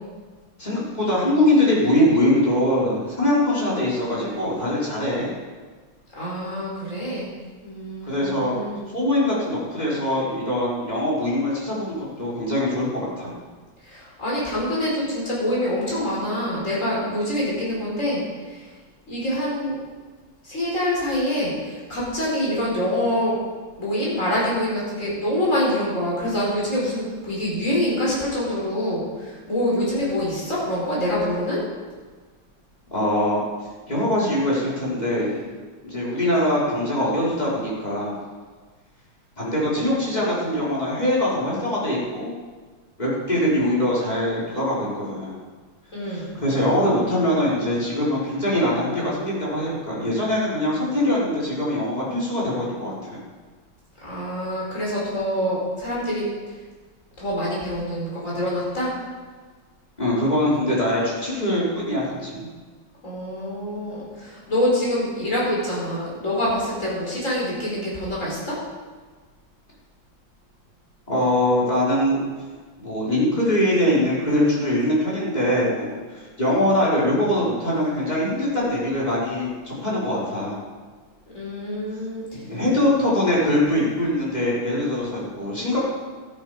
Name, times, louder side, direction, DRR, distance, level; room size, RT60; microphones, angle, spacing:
voice 1, 0.6-5.3 8.0-8.7 8.9-12.9 13.2-13.4 32.9-33.4 33.9-35.4 35.8-38.2 39.4-42.3 43.0-45.3 46.1-53.2 60.0-62.5 71.1-72.2 72.8-80.6 82.5-85.8, left 1 dB, 20° left, -7 dB, 4.2 m, -22 dB
voice 2, 6.2-7.3 7.6-8.8 13.8-18.2 18.5-18.7 19.1-19.7 20.4-23.4 23.8-31.6 45.9-46.3 54.0-56.3 57.2-58.9 63.0-68.6 81.3-82.2, left 1 dB, 35° left, -6 dB, 5.2 m, -25 dB
13.0 x 11.5 x 4.9 m, 1.4 s
omnidirectional pair, 2.3 m